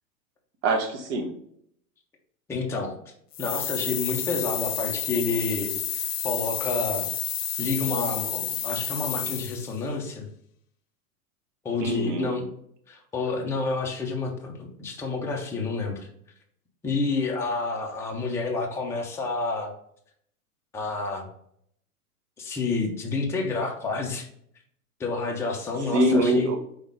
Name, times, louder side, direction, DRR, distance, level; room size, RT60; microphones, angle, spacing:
voice 1, 0.6-1.3 11.8-12.3 25.9-26.6, right 1 dB, 50° right, 4 dB, 1.2 m, -23 dB
voice 2, 2.5-2.9 3.4-7.1 7.6-10.3 11.6-12.5 12.9-16.1 16.8-19.7 20.7-21.3 22.4-24.3 25.0-26.5, left 3 dB, 5° left, 0 dB, 0.5 m, -29 dB
sound 1, 3.3-9.8, left 10 dB, 55° left, 0.9 m, -30 dB
4.3 x 3.5 x 3.5 m, 0.68 s
hypercardioid pair, 115°, 45 cm